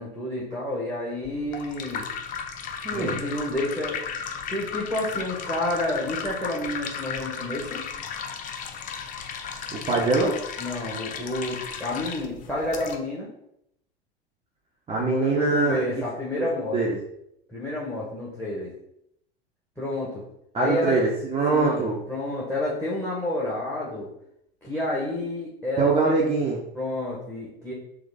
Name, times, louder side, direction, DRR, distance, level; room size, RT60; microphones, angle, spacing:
voice 1, 0.0-2.0 2.9-4.0 4.5-7.8 10.6-13.3 15.0-16.9 17.5-18.7 19.8-20.2 20.6-20.9 21.5-24.1 24.6-26.1 26.7-27.7, left 1 dB, 5° left, -5 dB, 1.2 m, -29 dB
sound 1, 1.2-13.0, left 6 dB, 25° left, 0.5 m, -35 dB
voice 2, 2.8-3.2 9.7-10.4 14.9-16.0 16.4-16.5 16.7-16.9 20.5-22.0 25.8-26.6, right 3 dB, 20° right, -3 dB, 0.8 m, -23 dB
3.9 x 2.9 x 4.0 m, 0.76 s
figure-of-eight pair, 80°, 32 cm